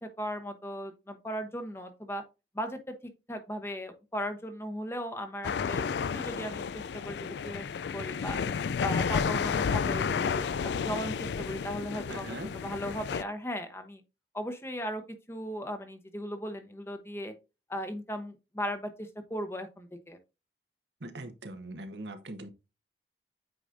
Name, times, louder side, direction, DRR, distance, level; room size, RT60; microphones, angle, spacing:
voice 1, 0.0-2.2 2.5-5.9 6.1-8.4 8.8-14.0 14.3-15.0 15.3-17.3 17.7-20.2, equal, 15° left, 0.8 m, -37 dB
sound 1, 5.4-13.2, left 6 dB, 75° left, 0.4 m, -31 dB
voice 2, 12.1-12.5 21.0-22.5, right 1 dB, 85° right, 1.2 m, -41 dB
8.6 x 4.9 x 2.6 m
head